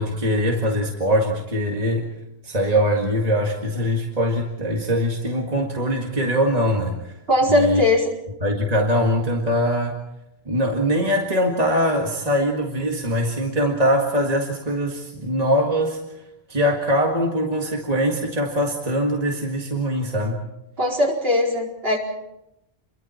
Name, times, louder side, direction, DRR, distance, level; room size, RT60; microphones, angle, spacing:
voice 1, 0.0-2.1 2.4-7.1 7.5-7.8 8.4-10.0 10.5-16.0 16.5-20.4, equal, 40° right, 1 dB, 2.0 m, -22 dB
voice 2, 7.3-8.1 20.8-22.0, left 1 dB, 65° right, -2 dB, 4.9 m, -20 dB
28.5 x 23.0 x 4.4 m, 0.85 s
omnidirectional pair, 1.1 m